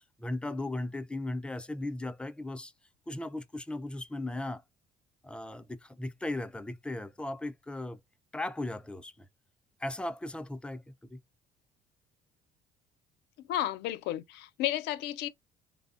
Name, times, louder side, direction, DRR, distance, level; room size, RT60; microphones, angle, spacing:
voice 1, 0.2-2.7 3.1-4.6 5.2-8.0 8.3-9.3 9.8-11.2, left 2 dB, 5° left, 0.3 m, -37 dB
voice 2, 13.5-15.3, left 13 dB, 85° left, 0.5 m, -32 dB
3.3 x 2.0 x 2.3 m
cardioid pair, 110°, 17 cm